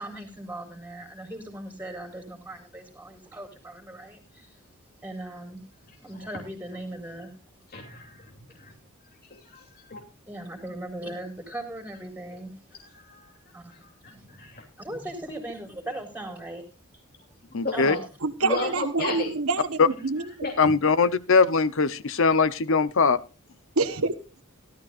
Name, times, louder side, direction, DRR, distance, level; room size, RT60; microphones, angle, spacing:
voice 1, 0.0-4.6 5.0-5.6 6.0-7.3 10.3-12.8 13.5-13.7 14.1-14.3 14.8-16.6 17.7-18.0 18.5-18.7, right 1 dB, 10° right, 4 dB, 4.1 m, -38 dB
voice 2, 7.7-8.7 9.3-9.6 9.9-10.0 12.9-13.3 13.8-13.9 14.2-14.6 17.6-18.0 18.4-19.3 20.4-20.7, left 2 dB, 45° left, 1 dB, 2.9 m, -33 dB
voice 3, 17.5-17.9 19.8-19.9 20.6-23.2, left 4 dB, 65° left, 16 dB, 0.8 m, -21 dB
voice 4, 18.2-20.3 23.8-24.1, right 3 dB, 75° right, 6 dB, 1.3 m, -27 dB
18.0 x 12.5 x 2.5 m, 0.30 s
head